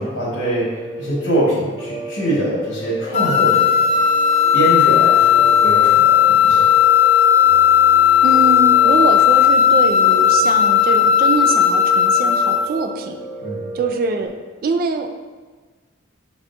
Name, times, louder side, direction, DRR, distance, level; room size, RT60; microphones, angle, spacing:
voice 1, 0.0-3.8 4.5-6.7 13.4-13.7, right 1 dB, 70° left, -6 dB, 1.1 m, -23 dB
Piano, 0.6-14.3, right 1 dB, 20° right, 0.8 m, -32 dB
sound 1, 3.1-12.7, left 9 dB, 35° left, 0.5 m, -14 dB
voice 2, 8.2-13.2 13.7-15.2, right 3 dB, 45° right, 6 dB, 0.3 m, -23 dB
6.6 x 2.3 x 2.4 m, 1.4 s
head